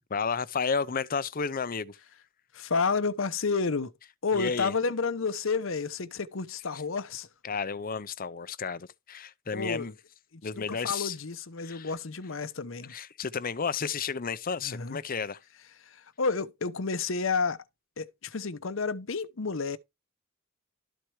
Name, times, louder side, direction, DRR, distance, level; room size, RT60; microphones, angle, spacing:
voice 1, 0.1-2.0 4.3-4.7 6.7-6.8 7.4-9.9 10.4-11.2 11.6-11.9 12.9-15.4, left 5 dB, 45° left, 0.7 m, -32 dB
voice 2, 2.5-3.9 4.2-7.3 9.5-9.9 10.3-12.9 14.6-15.0 15.9-17.6 18.0-19.8, left 4 dB, 70° left, 0.9 m, -30 dB
13.0 x 4.4 x 4.8 m
head